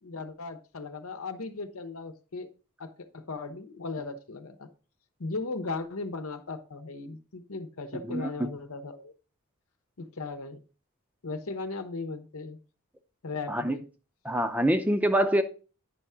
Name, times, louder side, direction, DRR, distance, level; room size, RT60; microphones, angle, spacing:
voice 1, 0.0-2.5 2.8-4.7 5.2-9.1 10.0-10.6 11.2-12.6 13.2-13.8, left 3 dB, 85° left, 0.9 m, -37 dB
voice 2, 14.2-15.4, right 1 dB, 5° right, 0.6 m, -25 dB
9.9 x 5.6 x 3.6 m
head